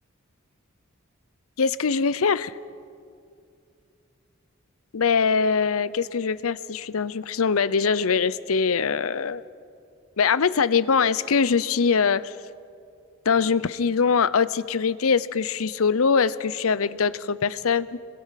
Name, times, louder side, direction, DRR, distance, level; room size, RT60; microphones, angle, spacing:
voice 1, 1.6-2.6 4.9-9.4 10.2-12.4 13.3-18.0, left 5 dB, 90° left, 17 dB, 0.6 m, -22 dB
27.0 x 21.5 x 5.8 m, 2.4 s
head